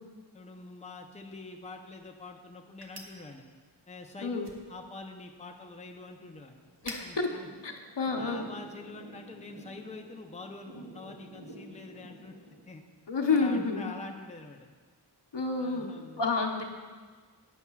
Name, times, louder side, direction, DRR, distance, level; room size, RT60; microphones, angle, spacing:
voice 1, 0.3-3.4 3.9-6.6 7.0-7.5 8.2-12.4 12.7-12.8 13.3-14.7 15.6-16.3, left 3 dB, 15° left, 3 dB, 0.7 m, -45 dB
sound 1, 2.7-8.6, right 1 dB, 55° right, 1.3 m, -52 dB
Thunder / Rain, 5.6-12.6, right 2 dB, 90° right, 1.5 m, -50 dB
voice 2, 7.6-8.4 13.1-13.9 15.3-15.9 16.2-16.6, left 4 dB, 65° left, 2 dB, 1.0 m, -29 dB
14.0 x 9.5 x 2.4 m, 1.5 s
wide cardioid pair, 60°, 45 cm